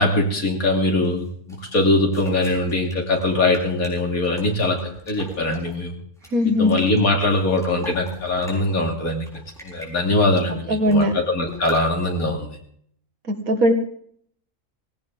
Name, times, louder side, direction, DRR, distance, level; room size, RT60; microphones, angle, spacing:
voice 1, 0.0-4.8 5.1-5.9 6.6-9.3 9.6-12.6, left 2 dB, 85° left, 2 dB, 3.2 m, -22 dB
sound 1, 1.0-5.8 6.2-8.7 9.1-9.9 10.4-10.5 10.7-11.2 11.5-11.8, equal, ahead, 6.1 m, -41 dB
voice 2, 6.3-6.8 10.7-11.1 13.3-13.7, left 1 dB, 80° right, 5 dB, 2.5 m, -19 dB
18.5 x 17.5 x 3.8 m, 0.64 s
omnidirectional pair, 1.5 m